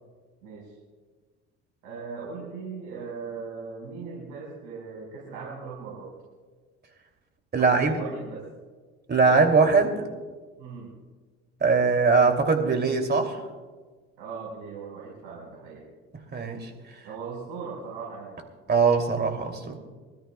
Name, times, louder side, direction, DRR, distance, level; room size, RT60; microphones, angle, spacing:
voice 1, 0.4-0.7 1.8-6.2 7.6-8.5 10.6-11.0 14.2-15.8 17.0-18.4, right 5 dB, 75° right, -4 dB, 4.6 m, -38 dB
voice 2, 7.5-7.9 9.1-10.1 11.6-13.4 16.3-16.7 18.7-19.8, right 4 dB, 35° right, 4 dB, 2.7 m, -21 dB
24.5 x 13.5 x 2.3 m, 1.4 s
hypercardioid pair, 70°, 30 cm